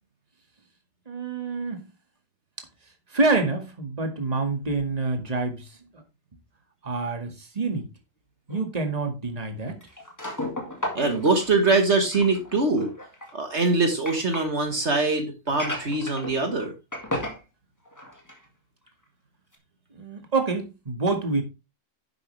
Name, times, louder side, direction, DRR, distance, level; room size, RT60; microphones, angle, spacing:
voice 1, 1.1-1.9 3.1-6.0 6.8-7.9 8.5-9.8 19.9-21.4, right 3 dB, 30° right, 2.1 m, -27 dB
sound 1, 8.5-8.6 9.8-14.5 15.5-16.7 16.9-17.4 17.9-18.4 18.9-19.0 19.5-19.6, left 1 dB, 15° left, 2.2 m, -35 dB
voice 2, 11.0-12.9 13.3-16.7, right 3 dB, 60° right, 1.8 m, -23 dB
10.5 x 7.9 x 3.3 m
omnidirectional pair, 1.3 m